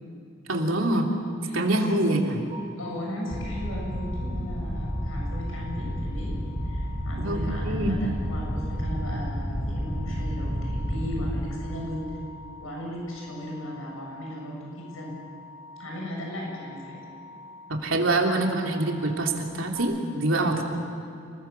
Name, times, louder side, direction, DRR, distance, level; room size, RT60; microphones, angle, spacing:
voice 1, 0.5-1.1 1.5-2.4 7.1-8.0 17.7-20.6, right 2 dB, 70° right, 1 dB, 3.4 m, -25 dB
voice 2, 1.4-2.1 2.8-6.3 6.7-12.2 12.6-15.2 15.8-17.0 20.4-20.6, equal, 85° left, -2 dB, 7.5 m, -36 dB
sound 1, 2.5-19.8, left 3 dB, 35° right, 7.0 m, -48 dB
sound 2, 3.3-11.4, equal, 45° left, 6.2 m, -30 dB
29.5 x 21.5 x 7.1 m, 2.6 s
head